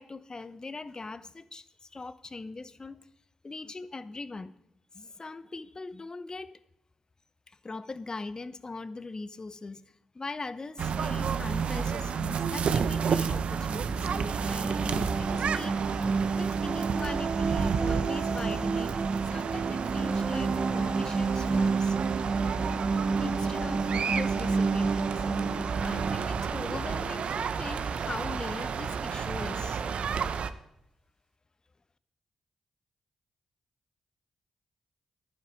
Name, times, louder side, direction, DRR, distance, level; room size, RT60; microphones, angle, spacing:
voice 1, 0.0-3.0 3.4-4.6 4.9-6.6 7.5-9.8 10.1-19.0 19.3-22.0 23.2-29.8, left 3 dB, 35° left, 15 dB, 0.8 m, -41 dB
sound 1, 10.8-30.5, right 6 dB, 70° right, 0.6 m, -31 dB
sound 2, 13.7-27.3, right 4 dB, 45° right, 1.1 m, -30 dB
11.0 x 9.9 x 4.9 m, 0.82 s
supercardioid pair, 40°, 2 cm